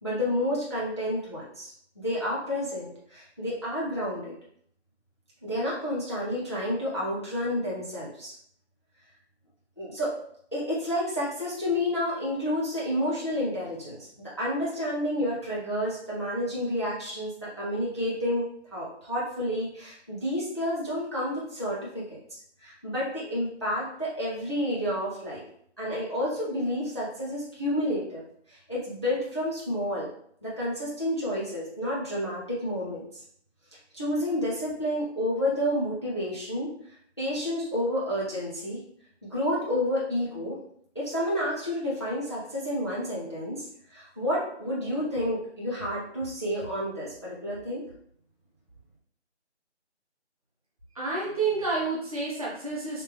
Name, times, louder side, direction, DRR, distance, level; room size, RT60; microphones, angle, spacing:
voice 1, 0.0-4.3 5.4-8.3 9.8-10.1 10.5-14.1 14.4-25.4 25.8-28.2 28.5-30.1 30.4-33.2 33.9-36.7 37.2-38.8 39.3-40.6 40.9-47.8, equal, 25° left, -7 dB, 0.6 m, -30 dB
voice 2, 50.9-53.0, right 3 dB, 30° right, -6 dB, 1.1 m, -29 dB
3.2 x 3.1 x 3.2 m, 0.65 s
figure-of-eight pair, 165°, 35 cm